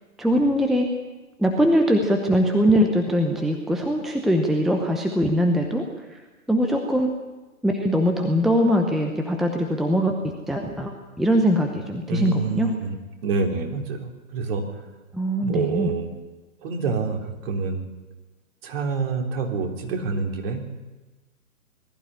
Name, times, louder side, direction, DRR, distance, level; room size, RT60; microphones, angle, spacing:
voice 1, 0.2-0.9 1.4-5.8 6.1-6.2 6.5-7.1 7.6-10.1 10.5-10.9 11.2-12.7 15.1-15.9, equal, ahead, 3 dB, 0.8 m, -21 dB
voice 2, 12.1-14.8 15.4-16.1 16.6-17.9 18.6-20.7, right 4 dB, 40° right, 2 dB, 3.6 m, -27 dB
20.5 x 14.5 x 9.8 m, 1.2 s
hypercardioid pair, 135°, 44 cm